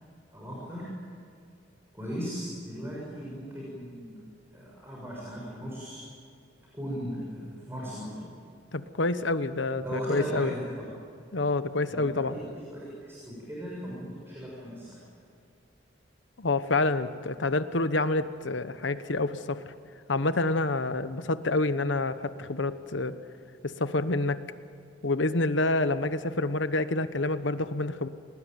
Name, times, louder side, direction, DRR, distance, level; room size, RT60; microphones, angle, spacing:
voice 1, 0.3-0.8 1.9-4.1 4.5-6.0 6.7-8.3 9.8-10.8 11.9-12.0 12.3-12.6 13.0-15.0, equal, 15° right, -5 dB, 7.1 m, -37 dB
voice 2, 8.7-10.5 11.3-12.3 16.4-19.6 20.1-23.2 23.6-24.4 25.0-28.1, left 2 dB, 75° left, 11 dB, 1.1 m, -28 dB
29.5 x 19.5 x 9.3 m, 2.3 s
head